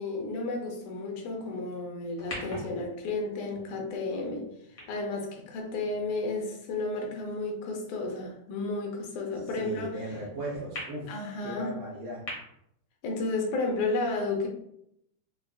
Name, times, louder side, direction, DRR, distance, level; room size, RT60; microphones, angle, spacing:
voice 1, 0.0-4.5 4.9-10.0 11.1-11.7 13.0-14.5, left 3 dB, 80° left, 1 dB, 2.2 m, -32 dB
sound 1, 2.2-6.6 7.3-7.4 10.7-10.8 12.3-12.4, left 1 dB, 50° left, 1.3 m, -43 dB
voice 2, 9.5-12.3, right 1 dB, 70° right, -4 dB, 1.6 m, -37 dB
5.6 x 2.5 x 2.3 m, 0.76 s
omnidirectional pair, 3.5 m